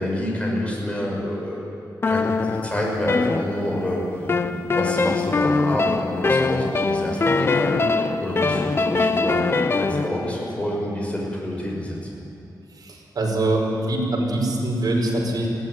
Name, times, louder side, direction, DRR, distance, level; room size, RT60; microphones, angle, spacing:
voice 1, 0.0-1.6 2.0-12.2, left 1 dB, 15° left, -2 dB, 5.9 m, -28 dB
sound 1, 2.0-3.9 4.3-10.1, left 3 dB, 35° left, 0.9 m, -22 dB
voice 2, 12.8-15.5, right 2 dB, 60° right, -1 dB, 5.4 m, -23 dB
21.5 x 16.5 x 9.4 m, 3.0 s
wide cardioid pair, 140°, 7 cm